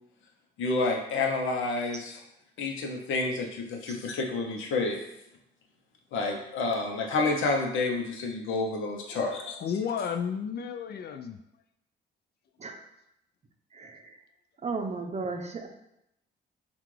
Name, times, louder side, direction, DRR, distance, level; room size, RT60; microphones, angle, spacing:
voice 1, 0.6-2.2 2.6-5.0 6.1-9.6, left 3 dB, 80° left, 2 dB, 0.8 m, -29 dB
voice 2, 9.1-11.4, left 7 dB, 55° left, 6 dB, 0.4 m, -33 dB
voice 3, 13.7-14.2 14.6-15.7, right 4 dB, 35° right, 4 dB, 0.6 m, -34 dB
5.7 x 2.4 x 3.2 m, 0.81 s
cardioid pair, 90°, 20 cm